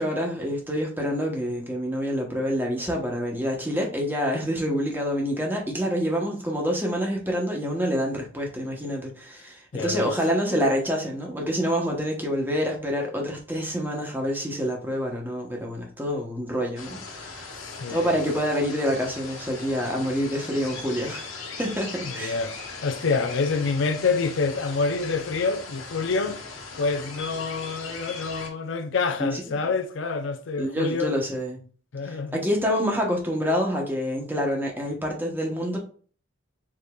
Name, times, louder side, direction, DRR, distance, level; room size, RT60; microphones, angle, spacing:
voice 1, 0.0-17.6 17.9-21.3 21.6-22.4 29.2-29.4 30.6-31.6 32.1-35.8, equal, 10° right, 1.0 m, -27 dB
voice 2, 9.7-10.2 17.5-18.2 22.0-31.1 31.9-32.4, left 4 dB, 70° left, 0.5 m, -27 dB
sound 1, 16.8-28.5, left 4 dB, 85° left, 1.2 m, -39 dB
4.9 x 4.0 x 2.3 m
head